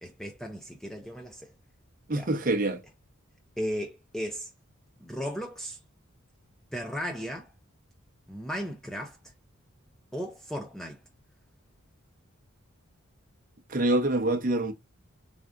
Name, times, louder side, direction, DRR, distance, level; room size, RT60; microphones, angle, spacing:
voice 1, 0.0-1.5 2.1-2.3 3.6-4.5 5.0-5.8 6.7-7.5 8.3-9.2 10.1-11.0, equal, ahead, 0.3 m, -35 dB
voice 2, 2.1-2.8 13.7-14.7, right 2 dB, 40° right, 0.7 m, -25 dB
3.6 x 3.4 x 2.4 m
head